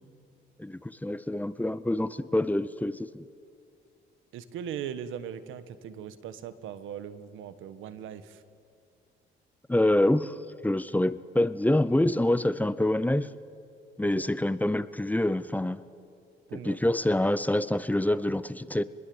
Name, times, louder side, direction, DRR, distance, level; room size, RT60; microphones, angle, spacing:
voice 1, 0.6-3.2 9.7-10.3 10.6-13.3 14.0-15.8 16.6-18.8, left 1 dB, 10° left, 15 dB, 0.7 m, -26 dB
voice 2, 4.3-8.4 14.0-14.3 16.5-16.8, right 9 dB, 90° right, 13 dB, 1.3 m, -39 dB
26.5 x 21.0 x 7.9 m, 2.3 s
cardioid pair, 90°, 20 cm